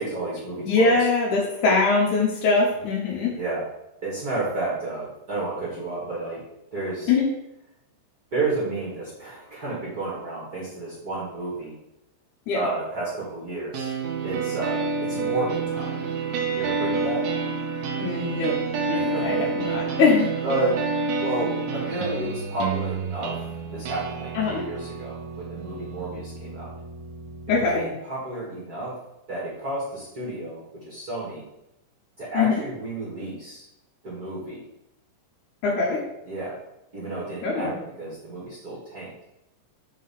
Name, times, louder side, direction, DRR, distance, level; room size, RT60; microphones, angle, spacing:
voice 1, 0.0-0.9 3.4-3.6 4.0-6.4 6.7-7.1 8.3-11.7 12.5-13.9 14.2-16.0 16.5-17.2 18.9-19.4 20.4-20.8 21.2-23.4 23.7-26.7 27.7-29.0 29.3-31.4 32.2-33.6 34.0-34.6 36.2-36.6 36.9-39.1, right 2 dB, 45° right, -7 dB, 1.1 m, -31 dB
voice 2, 0.6-3.4 7.1-7.3 12.5-12.6 18.0-18.6 18.9-20.3 24.3-24.6 27.5-27.8 32.3-32.6 35.6-36.0 37.4-37.8, left 4 dB, 90° left, -2 dB, 1.7 m, -22 dB
sound 1, 13.7-27.7, right 4 dB, 80° right, 2.1 m, -29 dB
6.9 x 3.8 x 5.5 m, 0.86 s
omnidirectional pair, 5.3 m